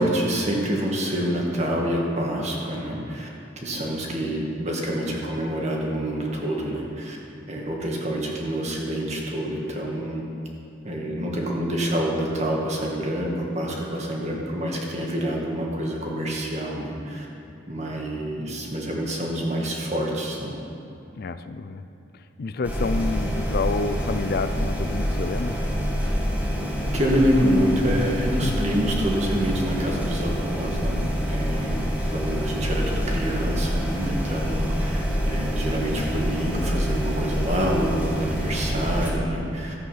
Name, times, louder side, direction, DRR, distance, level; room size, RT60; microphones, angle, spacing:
voice 1, 0.0-3.3 3.6-7.2 7.5-10.3 10.8-17.3 17.7-20.5 26.8-39.7, equal, 35° right, -1 dB, 1.9 m, -27 dB
voice 2, 21.2-21.8 22.1-25.6 28.4-28.7, left 3 dB, 55° left, 10 dB, 0.4 m, -29 dB
sound 1, 22.6-39.1, equal, 10° right, 1.9 m, -26 dB
14.0 x 8.3 x 5.8 m, 2.8 s
head